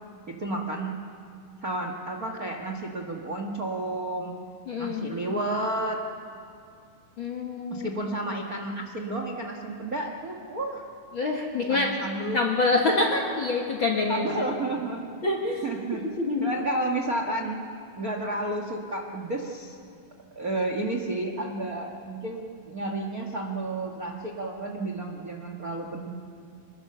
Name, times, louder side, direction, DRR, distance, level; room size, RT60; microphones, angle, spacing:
voice 1, 0.3-0.9 1.6-4.3 4.8-6.0 7.7-10.8 11.7-12.4 14.1-15.0 15.6-16.0 16.4-17.6 17.9-19.8 20.3-26.1, right 2 dB, 50° right, 2 dB, 1.1 m, -31 dB
voice 2, 4.7-5.2 7.2-7.9 11.1-11.9 12.3-14.4 15.2-15.6 16.2-16.5, left 3 dB, 50° left, 1 dB, 1.6 m, -26 dB
26.0 x 21.0 x 6.8 m, 2.4 s
omnidirectional pair, 4.4 m